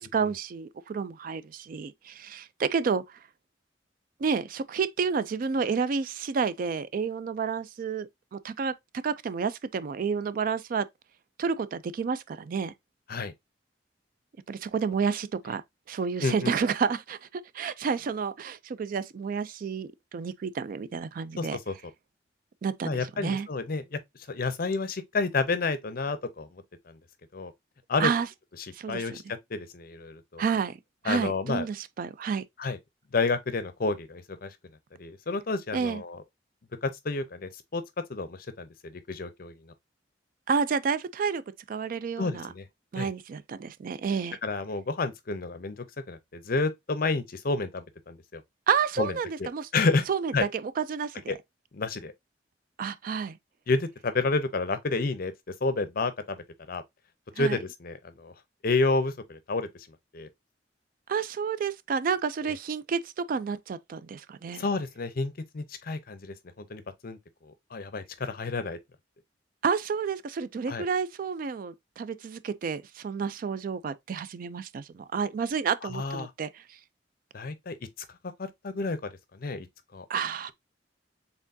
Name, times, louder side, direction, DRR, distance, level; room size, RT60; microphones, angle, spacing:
voice 1, 0.0-3.2 4.2-10.9 11.4-12.7 14.5-15.6 15.9-21.6 22.6-23.5 28.0-28.3 28.7-29.0 30.4-30.8 31.0-32.4 35.7-36.0 40.5-41.4 41.7-42.5 42.9-44.4 48.7-49.7 50.1-51.4 52.8-53.4 57.4-57.6 61.1-64.6 69.6-76.8 80.1-80.5, right 6 dB, 50° right, 0.3 m, -30 dB
voice 2, 16.2-16.5 21.4-21.7 22.8-24.0 24.3-27.0 27.3-27.5 27.9-28.1 28.9-29.2 29.5-30.4 31.1-31.7 32.6-32.8 33.1-34.5 35.0-36.2 36.8-37.8 38.1-39.5 42.2-42.7 42.9-43.1 44.4-48.4 49.0-49.1 49.4-50.1 50.3-50.4 51.3-51.4 51.7-52.1 53.7-55.3 55.6-56.4 56.7-56.8 57.4-58.3 58.6-59.9 60.1-60.3 62.4-62.5 64.6-67.2 67.4-68.8 70.7-70.9 75.9-76.3 77.3-77.8 78.4-79.7 79.9-80.1, left 3 dB, 55° left, 0.6 m, -30 dB
4.4 x 3.5 x 2.6 m
head